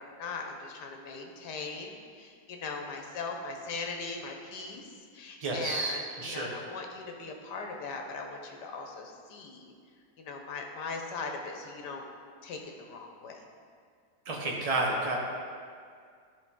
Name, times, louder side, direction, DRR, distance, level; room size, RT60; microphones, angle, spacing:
voice 1, 0.0-9.7 10.2-12.0 12.4-13.4, left 4 dB, 80° left, 2 dB, 1.5 m, -40 dB
voice 2, 5.4-6.5 14.3-15.2, right 2 dB, 30° right, -1 dB, 0.8 m, -31 dB
12.0 x 4.6 x 3.7 m, 2.1 s
omnidirectional pair, 1.8 m